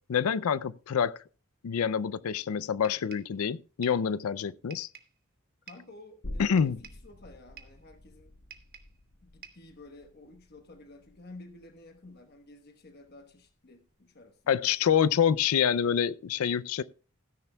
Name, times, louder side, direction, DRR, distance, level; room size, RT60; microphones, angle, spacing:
voice 1, 0.1-1.2 1.6-4.9 6.4-6.8 14.5-16.8, left 7 dB, 85° left, 0.4 m, -27 dB
sound 1, 2.8-3.4 3.8-4.1 4.7-5.2 5.7-6.0 6.6-7.1 7.6-7.8 8.5-9.0 9.4-9.7, right 7 dB, 45° right, 1.1 m, -50 dB
voice 2, 5.7-8.3 9.2-14.7, left 2 dB, 45° left, 1.1 m, -52 dB
sound 2, 6.2-13.5 13.9-14.0, left 1 dB, 70° left, 1.1 m, -48 dB
16.0 x 10.5 x 2.2 m
head